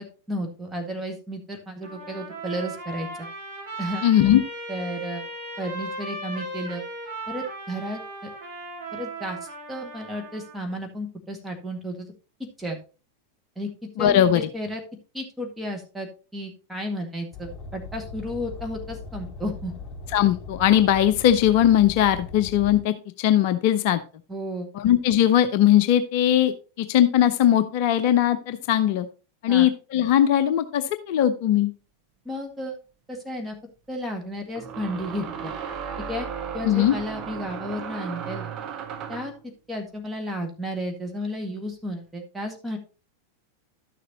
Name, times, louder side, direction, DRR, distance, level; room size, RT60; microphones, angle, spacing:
voice 1, 0.0-3.3 3.8-4.0 4.7-5.2 5.6-6.9 7.3-8.3 8.9-9.4 9.7-12.1 12.6-12.8 13.5-13.7 14.0-14.8 15.1-19.7 24.3-24.7 29.5-29.7 32.2-32.8 33.1-33.5 33.9-35.5 36.1-36.3 36.5-38.5 39.1-39.3 39.7-42.8, equal, 5° right, 2 dB, 1.8 m, -33 dB
Trumpet, 1.8-10.6, right 2 dB, 55° right, 4.0 m, -37 dB
voice 2, 4.0-4.4 14.0-14.5 20.1-24.0 24.7-29.1 29.4-31.7 36.6-36.9, left 11 dB, 45° left, 11 dB, 0.6 m, -20 dB
Car, 17.3-22.8, left 3 dB, 20° left, 4.2 m, -39 dB
sound 1, 32.6-32.7 34.6-39.4, right 7 dB, 35° right, 0.9 m, -35 dB
11.5 x 6.7 x 2.9 m, 0.34 s
figure-of-eight pair, 90°, 0 cm